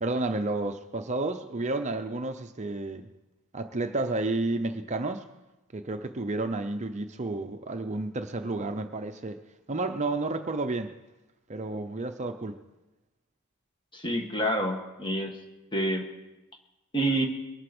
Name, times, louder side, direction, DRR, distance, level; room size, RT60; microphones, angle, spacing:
voice 1, 0.0-3.1 3.5-5.2 5.7-9.4 9.7-10.9 11.5-12.6, right 2 dB, 30° right, 7 dB, 0.7 m, -31 dB
voice 2, 13.9-15.4 15.7-16.1 16.9-17.2, right 1 dB, 20° left, 3 dB, 1.8 m, -27 dB
22.0 x 8.1 x 6.1 m, 1.0 s
head